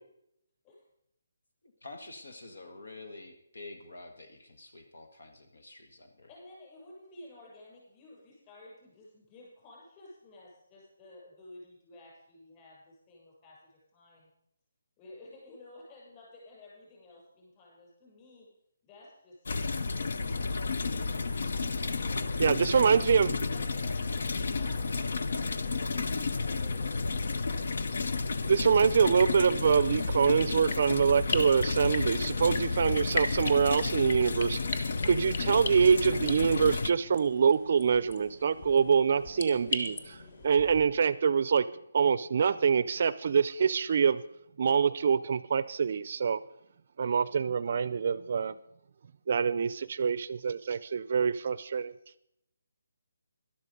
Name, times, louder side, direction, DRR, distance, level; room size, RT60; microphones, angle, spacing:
voice 1, 1.8-6.3, left 2 dB, 80° left, 7 dB, 1.9 m, -48 dB
voice 2, 6.3-14.3 15.0-18.5 18.8-21.2 22.1-23.0 23.5-28.2, left 2 dB, 20° left, -4 dB, 6.9 m, -53 dB
sound 1, 19.5-36.9, left 4 dB, 65° left, 0.7 m, -32 dB
voice 3, 22.4-23.3 28.5-34.6 35.0-40.2 40.4-41.7 41.9-44.2 44.6-46.4 47.0-48.5 49.3-51.9, right 6 dB, 45° right, 17 dB, 0.5 m, -25 dB
sound 2, 29.1-40.8, left 3 dB, 45° left, 1.6 m, -39 dB
12.5 x 12.0 x 5.3 m, 0.77 s
hypercardioid pair, 165°, 0 cm